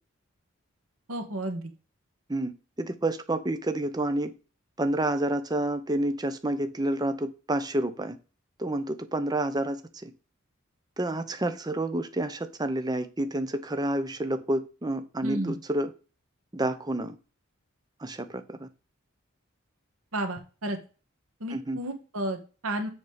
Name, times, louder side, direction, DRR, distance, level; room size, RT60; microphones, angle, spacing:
voice 1, 1.1-1.6 15.2-15.6 20.1-20.8 21.4-22.9, right 1 dB, 85° right, 1.7 m, -32 dB
voice 2, 2.8-4.3 4.8-8.2 8.6-10.1 11.0-15.9 16.5-17.2 18.0-18.7 21.5-21.8, right 1 dB, 20° right, 0.7 m, -29 dB
6.8 x 5.1 x 5.0 m
head